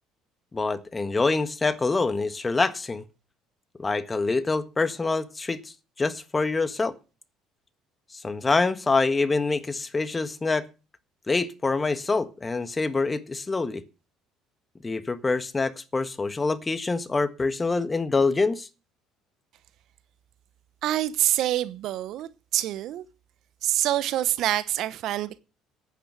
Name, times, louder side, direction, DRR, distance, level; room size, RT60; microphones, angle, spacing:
voice 1, 0.5-3.0 3.8-5.6 6.0-7.0 8.1-10.6 11.3-13.8 14.8-18.7, left 3 dB, 25° left, 1.5 m, -25 dB
voice 2, 20.8-23.0 23.6-25.4, right 13 dB, 65° right, 0.9 m, -26 dB
10.0 x 9.3 x 6.8 m
hypercardioid pair, 70°, 0 cm